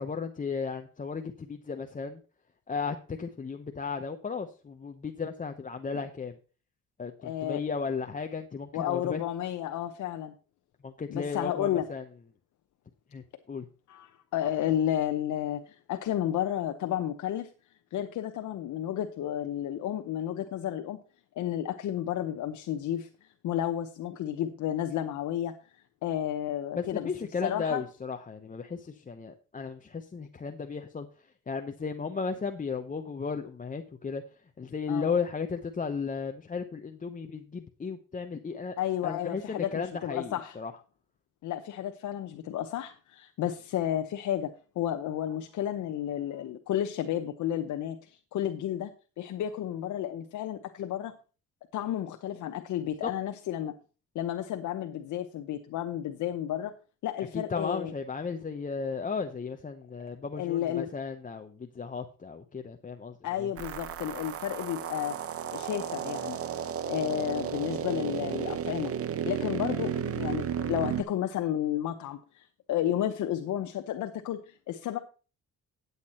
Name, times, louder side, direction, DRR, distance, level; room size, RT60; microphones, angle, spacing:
voice 1, 0.0-2.2 2.7-6.3 7.0-9.2 10.8-12.0 13.1-13.7 26.7-31.1 31.5-34.2 34.6-38.8 39.0-40.7 53.0-53.1 57.3-63.5, left 5 dB, 25° left, 0.8 m, -35 dB
voice 2, 7.2-7.6 8.7-10.3 11.1-11.9 13.9-17.5 17.9-21.0 21.4-23.1 23.4-25.5 26.0-27.1 27.4-27.8 34.9-35.1 38.8-40.6 41.4-48.9 49.2-51.1 51.7-53.7 54.1-56.7 57.0-57.9 60.4-60.9 63.2-65.2 65.5-66.4 66.9-68.9 69.3-75.0, left 11 dB, 75° left, 0.8 m, -32 dB
sound 1, 63.6-71.0, right 9 dB, 50° right, 0.8 m, -33 dB
9.8 x 8.2 x 4.2 m
cardioid pair, 90°, 30 cm